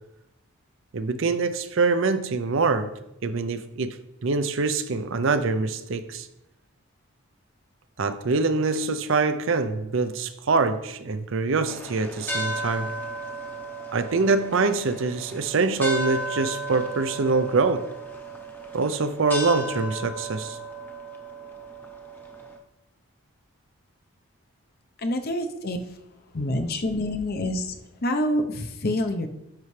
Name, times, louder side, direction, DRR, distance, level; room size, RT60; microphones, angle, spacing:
voice 1, 0.9-2.9 3.2-4.0 4.2-6.3 8.0-12.9 13.9-17.9 18.7-20.6, right 3 dB, 60° right, 0.5 m, -24 dB
sound 1, 11.7-22.6, right 1 dB, 10° left, 0.8 m, -35 dB
voice 2, 25.0-25.8 26.3-29.3, left 1 dB, 45° left, 0.7 m, -27 dB
10.5 x 5.6 x 3.2 m
head